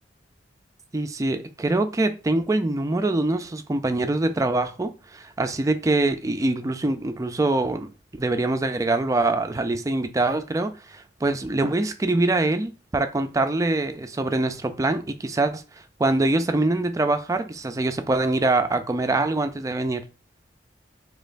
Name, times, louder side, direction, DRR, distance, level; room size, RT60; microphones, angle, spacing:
voice 1, 0.9-15.6 16.0-20.0, right 2 dB, 20° right, 0.3 m, -24 dB
4.1 x 2.9 x 2.5 m
head